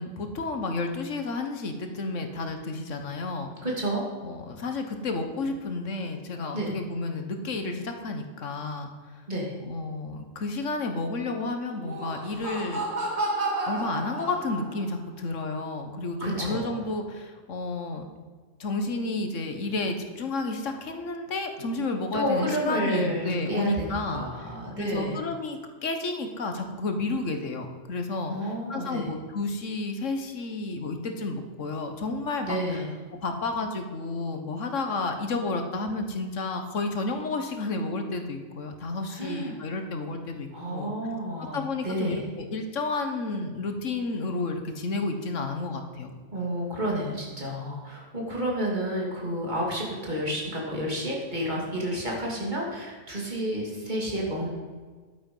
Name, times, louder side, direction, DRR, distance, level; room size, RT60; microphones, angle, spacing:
voice 1, 0.0-3.5 4.2-8.9 9.7-12.8 13.6-18.0 18.6-24.5 24.8-32.8 33.2-40.9 41.4-46.1, left 3 dB, 75° left, 6 dB, 1.5 m, -31 dB
voice 2, 3.6-4.0 6.5-6.7 9.3-9.5 16.2-16.8 22.1-25.2 28.3-29.1 32.5-32.9 39.1-39.6 40.5-41.6 41.8-42.2 46.3-54.5, equal, 35° right, -3 dB, 2.7 m, -30 dB
Laughter, 11.7-14.9, right 2 dB, 60° right, 2.7 m, -31 dB
11.5 x 9.0 x 5.4 m, 1.5 s
omnidirectional pair, 1.3 m